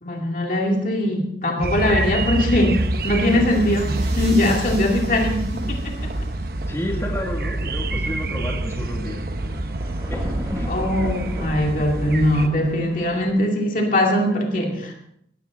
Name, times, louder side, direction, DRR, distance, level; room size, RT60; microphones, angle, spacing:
voice 1, 0.0-6.1 10.7-14.9, left 1 dB, 45° left, 1 dB, 2.4 m, -21 dB
sound 1, 1.6-12.5, right 2 dB, 55° right, 0.9 m, -26 dB
sound 2, 2.8-6.7, right 3 dB, 40° right, 5.2 m, -43 dB
voice 2, 6.7-9.6 10.1-10.7, left 1 dB, 15° left, -1 dB, 2.2 m, -31 dB
Thunder, 7.2-7.3 7.5-13.3, equal, 20° right, 3.3 m, -36 dB
16.5 x 13.5 x 3.8 m, 0.71 s
head